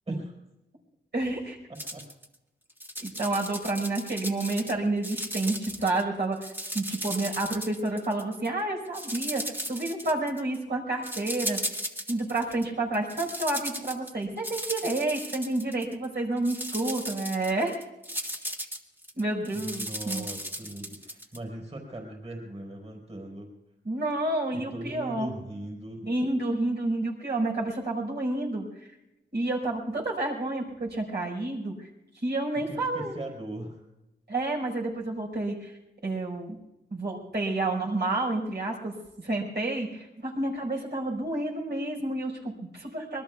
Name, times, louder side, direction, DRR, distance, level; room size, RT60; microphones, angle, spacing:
voice 1, 1.1-1.6 3.0-6.5 6.7-9.4 9.7-11.6 12.1-17.8 19.2-20.3 23.8-25.3 26.0-28.9 29.3-33.1 34.3-36.6 36.9-43.2, right 2 dB, 55° right, -2 dB, 4.9 m, -30 dB
voice 2, 1.7-2.0 19.5-23.5 24.5-26.1 32.7-33.8, right 1 dB, 30° right, 1 dB, 4.3 m, -39 dB
sound 1, 1.8-2.3 2.7-4.7 5.0-6.0 6.3-8.5 8.9-10.6 11.0-12.7 12.9-16.1 16.4-21.4, equal, 10° right, 1.7 m, -36 dB
26.0 x 22.0 x 2.4 m, 0.94 s
wide cardioid pair, 125°, 20 cm